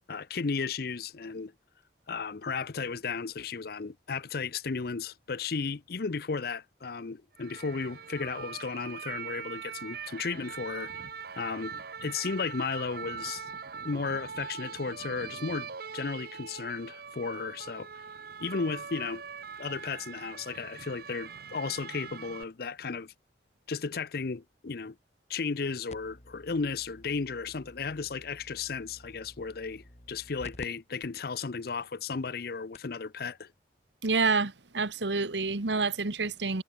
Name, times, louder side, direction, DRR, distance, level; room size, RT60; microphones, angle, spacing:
voice 1, 0.1-1.5 2.1-11.0 11.4-13.5 13.8-17.9 18.4-19.2 19.6-23.1 23.7-25.0 25.3-33.5, left 4 dB, 60° left, 0.6 m, -34 dB
sound 1, 7.4-22.4, right 6 dB, 55° right, 1.0 m, -42 dB
sound 2, 25.9-30.7 31.0-31.1 31.8-31.9 32.4-32.5 32.7-33.0 34.2-34.3, left 1 dB, 40° left, 3.1 m, -51 dB
voice 2, 34.0-36.6, right 4 dB, 80° right, 1.4 m, -28 dB
head